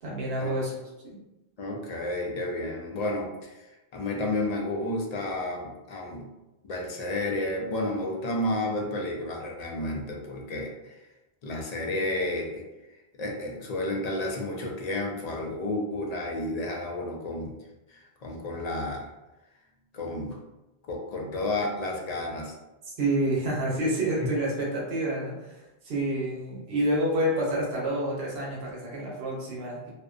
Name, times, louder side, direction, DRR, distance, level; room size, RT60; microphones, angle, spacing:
voice 1, 0.0-0.8 1.0-1.2 23.0-25.4 25.8-29.9, right 1 dB, 75° right, -4 dB, 1.0 m, -28 dB
voice 2, 1.6-3.6 3.9-6.3 6.6-11.0 11.4-12.6 13.2-17.6 17.9-19.1 19.9-20.4 20.9-22.5 24.2-24.3, left 1 dB, 55° left, 0 dB, 0.4 m, -31 dB
2.5 x 2.1 x 2.4 m, 0.99 s
omnidirectional pair, 1.1 m